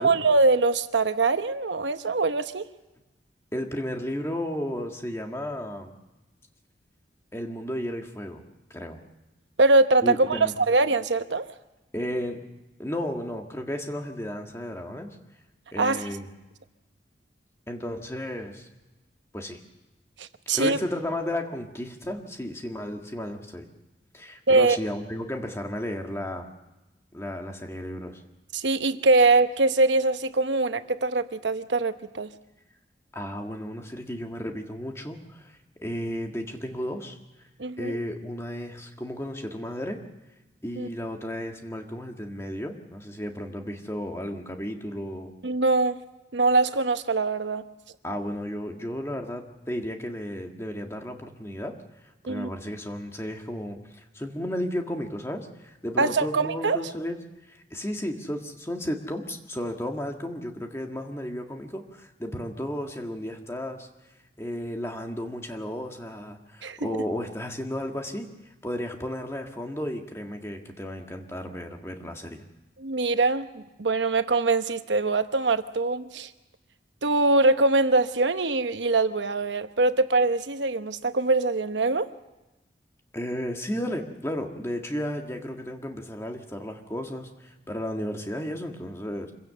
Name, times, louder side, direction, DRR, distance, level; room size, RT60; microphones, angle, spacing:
voice 1, 0.0-2.7 9.6-11.5 15.8-16.0 20.2-20.8 24.5-24.8 28.5-32.3 37.6-38.0 40.8-40.9 45.4-46.0 46.3-47.6 52.2-52.5 56.0-56.8 66.6-66.8 72.8-76.3 77.0-82.1, right 3 dB, 90° right, 10 dB, 1.0 m, -23 dB
voice 2, 3.5-5.9 7.3-8.4 8.7-9.0 10.0-10.5 11.9-12.4 12.8-15.2 15.7-16.3 17.7-18.7 19.3-19.6 20.5-23.6 24.1-26.5 27.1-28.2 33.1-37.2 37.8-40.0 40.6-45.3 48.0-51.7 52.2-57.2 57.5-63.9 64.4-68.3 68.6-72.5 83.1-89.3, equal, 15° left, 3 dB, 1.7 m, -33 dB
25.5 x 16.5 x 6.8 m, 1.0 s
head